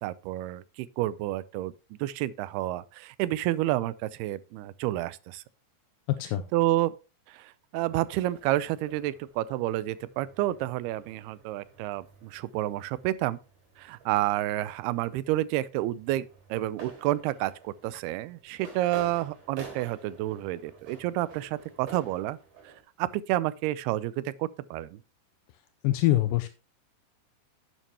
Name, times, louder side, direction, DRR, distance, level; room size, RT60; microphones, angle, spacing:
voice 1, 0.0-1.7 2.0-5.4 6.5-6.9 7.3-13.4 13.8-16.3 16.5-22.4 22.7-22.8 23.0-25.0, right 15 dB, 80° right, 2.5 m, -30 dB
voice 2, 6.1-6.5 25.8-26.5, left 15 dB, 85° left, 2.0 m, -24 dB
sound 1, 7.9-22.8, right 5 dB, 50° right, 5.1 m, -51 dB
11.0 x 9.1 x 2.8 m
omnidirectional pair, 4.7 m